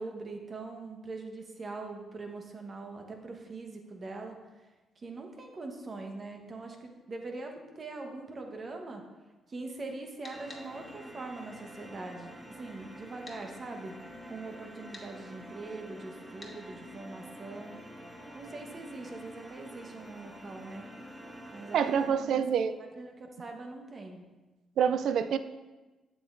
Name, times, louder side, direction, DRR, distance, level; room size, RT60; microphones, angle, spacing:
voice 1, 0.0-4.4 5.0-9.0 9.5-14.0 14.3-17.8 18.3-20.9 21.5-22.4 23.0-24.3, right 3 dB, 45° right, 3 dB, 1.1 m, -42 dB
sound 1, 10.2-10.6 13.2-13.4 14.9-15.1 16.4-16.6, left 2 dB, 30° left, 1.5 m, -47 dB
sound 2, 10.3-22.1, equal, 25° right, 1.7 m, -48 dB
voice 2, 21.7-22.8 24.8-25.4, right 7 dB, 75° right, 11 dB, 0.3 m, -26 dB
7.4 x 7.3 x 2.6 m, 1.2 s
supercardioid pair, 60°, 0 cm